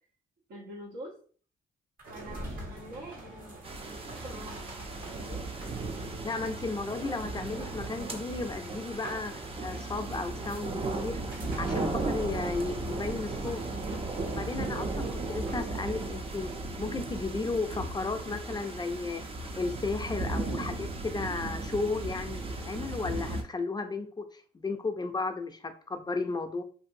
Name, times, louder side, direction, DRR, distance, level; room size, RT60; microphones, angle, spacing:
voice 1, 0.5-1.1 2.1-5.4, right 1 dB, 80° right, -1 dB, 1.0 m, -45 dB
sound 1, 2.0-15.7, right 1 dB, 60° right, 1.4 m, -46 dB
sound 2, 3.6-23.4, right 2 dB, 35° right, 0.5 m, -36 dB
voice 2, 6.2-11.2 11.6-13.6 14.3-16.5 16.8-19.2 19.5-26.6, left 3 dB, 25° left, 7 dB, 0.4 m, -34 dB
2.6 x 2.6 x 2.5 m, 0.43 s
supercardioid pair, 60°, 17 cm